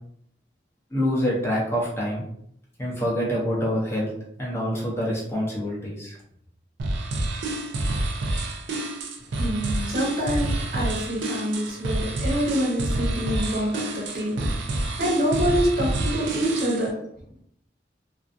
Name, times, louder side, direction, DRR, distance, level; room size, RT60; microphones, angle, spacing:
voice 1, 0.9-2.2 2.8-4.1 4.4-6.2, equal, 15° left, -4 dB, 0.5 m, -26 dB
sound 1, 6.8-16.9, right 2 dB, 80° right, 0.4 m, -28 dB
voice 2, 9.4-14.5 15.0-16.9, equal, 50° right, -2 dB, 0.8 m, -26 dB
2.4 x 2.3 x 2.4 m, 0.69 s
head